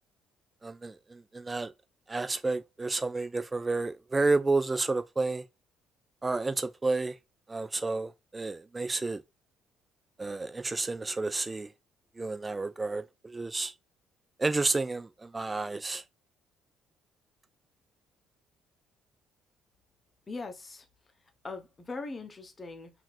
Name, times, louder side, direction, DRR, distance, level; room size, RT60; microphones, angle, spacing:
voice 1, 0.6-1.7 2.1-5.4 6.2-7.1 7.5-9.2 10.2-11.7 12.2-13.7 14.4-16.0, right 3 dB, 20° right, 0.4 m, -30 dB
voice 2, 20.3-20.8 21.4-22.9, left 3 dB, 25° left, 1.1 m, -40 dB
5.5 x 2.9 x 2.4 m
figure-of-eight pair, 45°, 0 cm